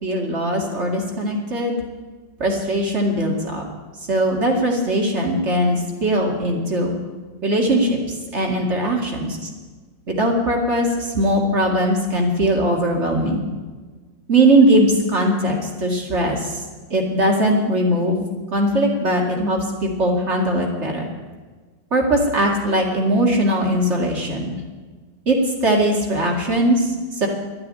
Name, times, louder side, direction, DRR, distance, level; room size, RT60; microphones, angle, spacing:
voice 1, 0.0-1.8 2.4-3.6 4.1-6.9 7.4-8.0 8.3-9.4 10.1-13.4 14.3-16.6 16.9-18.2 18.5-21.1 21.9-24.5 25.3-27.3, right 1 dB, 40° right, 0 dB, 2.5 m, -20 dB
12.5 x 9.5 x 8.8 m, 1.4 s
omnidirectional pair, 2.0 m